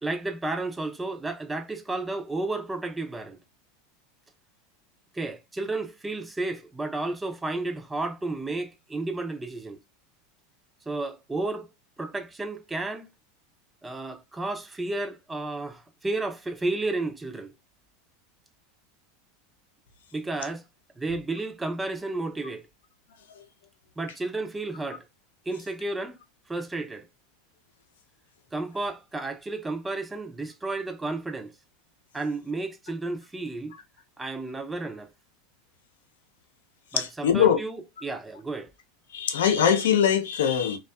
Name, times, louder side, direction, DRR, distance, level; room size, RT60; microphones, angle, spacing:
voice 1, 0.0-3.4 5.1-9.8 10.9-11.7 12.0-13.1 13.8-17.5 20.1-20.6 21.0-22.7 24.0-25.0 25.5-26.2 26.5-27.1 28.5-31.5 32.1-33.7 34.2-35.1 36.9-37.8 38.0-38.7, right 2 dB, 10° right, 0.4 m, -32 dB
voice 2, 36.9-37.6 39.1-40.8, left 8 dB, 90° left, 0.5 m, -22 dB
2.6 x 2.3 x 2.2 m
supercardioid pair, 125°, 0 cm